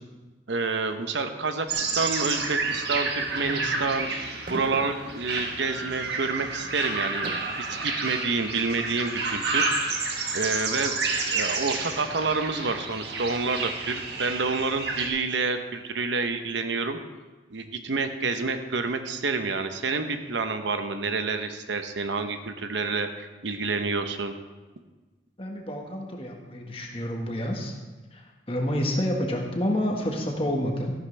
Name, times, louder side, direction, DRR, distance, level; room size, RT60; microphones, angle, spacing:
voice 1, 0.5-4.1 4.5-7.3 7.6-9.7 10.3-17.0 17.5-24.3, right 4 dB, 85° right, 8 dB, 0.9 m, -28 dB
sound 1, 1.7-15.1, right 3 dB, 70° right, 1.5 m, -30 dB
sound 2, 2.2-2.9 4.4-5.6 6.1-6.3 7.0-7.8, right 1 dB, 50° right, 0.8 m, -40 dB
voice 2, 3.4-3.7 25.4-27.7 28.5-30.9, equal, 30° left, 1 dB, 1.5 m, -29 dB
13.5 x 11.5 x 3.3 m, 1.2 s
head